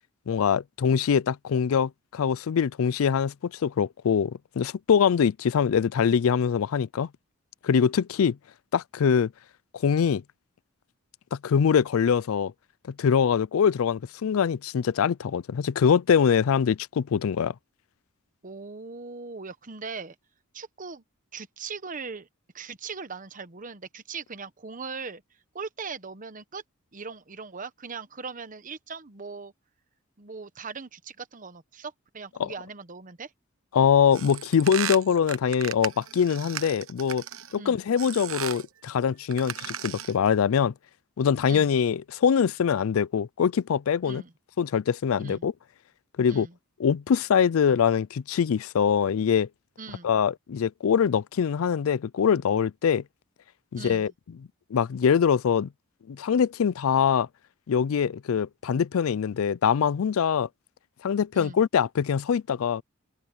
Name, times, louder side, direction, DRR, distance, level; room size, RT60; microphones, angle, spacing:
voice 1, 0.3-7.1 7.6-8.4 8.7-9.3 9.7-10.2 11.3-12.5 13.0-17.5 32.4-32.5 33.7-37.2 37.5-40.7 41.2-44.2 44.6-45.5 46.2-46.5 46.8-49.5 50.0-53.0 53.7-54.1 54.7-55.7 56.1-57.3 57.7-60.5 61.0-62.8, left 7 dB, 85° left, 0.4 m, -23 dB
voice 2, 18.4-20.1 20.5-21.0 21.3-22.3 22.5-25.2 25.5-26.6 26.9-29.5 30.2-33.3 37.6-37.8 41.5-41.7 44.0-44.3 45.2-45.5 46.3-46.5 49.8-50.1 53.8-54.1 61.3-61.6, right 4 dB, 40° right, 1.1 m, -39 dB
sound 1, 34.1-37.6 38.0-38.7 39.2-40.2, right 9 dB, 85° right, 1.2 m, -35 dB
open air
head